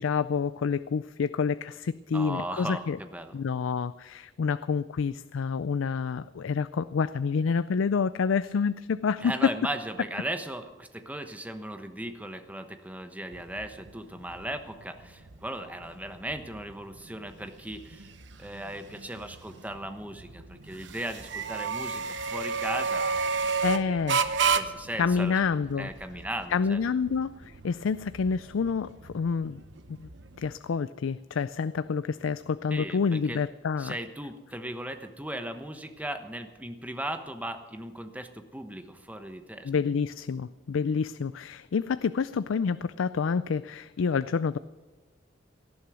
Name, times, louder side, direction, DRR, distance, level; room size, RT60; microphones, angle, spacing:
voice 1, 0.0-3.0 3.3-9.6 23.6-24.2 25.0-25.9 26.5-29.6 29.9-30.1 30.4-33.9 39.6-44.6, left 5 dB, 80° left, 15 dB, 0.4 m, -28 dB
voice 2, 2.1-3.3 9.2-18.1 18.4-24.0 24.5-25.4 25.8-26.8 32.7-33.4 33.8-39.7, right 1 dB, 10° right, 7 dB, 1.0 m, -37 dB
sound 1, 13.3-30.5, right 5 dB, 65° right, 1.0 m, -33 dB
18.5 x 12.5 x 6.2 m, 1.3 s
head